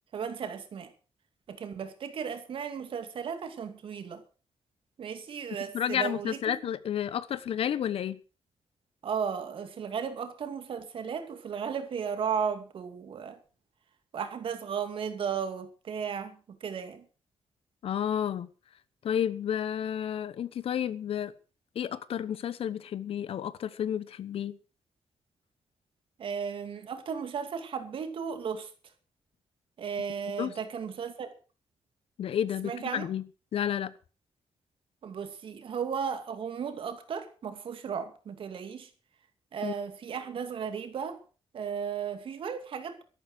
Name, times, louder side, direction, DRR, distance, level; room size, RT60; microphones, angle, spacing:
voice 1, 0.1-0.9 1.5-4.2 5.0-6.5 9.0-13.4 14.1-17.0 26.2-28.7 29.8-31.3 32.6-33.1 35.0-38.9 39.5-41.2 41.5-43.0, right 7 dB, 60° right, 2.5 m, -35 dB
voice 2, 5.7-8.2 17.8-18.5 19.0-21.3 21.7-24.6 30.4-30.5 32.2-33.2 33.5-33.9 39.6-39.7, left 9 dB, 70° left, 1.0 m, -31 dB
13.0 x 12.0 x 6.3 m
wide cardioid pair, 175°, 10 cm